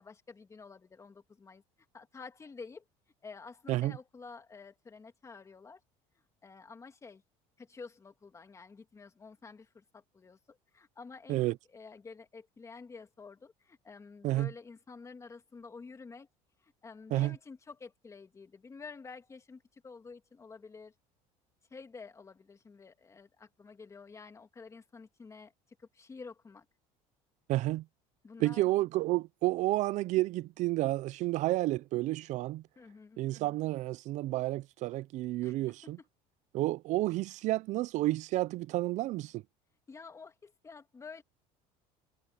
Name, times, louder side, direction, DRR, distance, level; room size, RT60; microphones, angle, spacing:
voice 1, 0.0-1.6 1.9-2.8 3.2-5.8 6.4-7.2 7.6-16.3 16.6-20.9 21.7-25.5 25.8-26.6 28.2-28.7 32.8-33.2 35.4-36.1 39.9-41.2, left 4 dB, 20° left, 2.4 m, -50 dB
voice 2, 27.5-27.8 28.4-32.6 33.2-36.0 36.5-39.4, right 17 dB, 55° right, 0.4 m, -30 dB
cardioid pair, 130°, 15 cm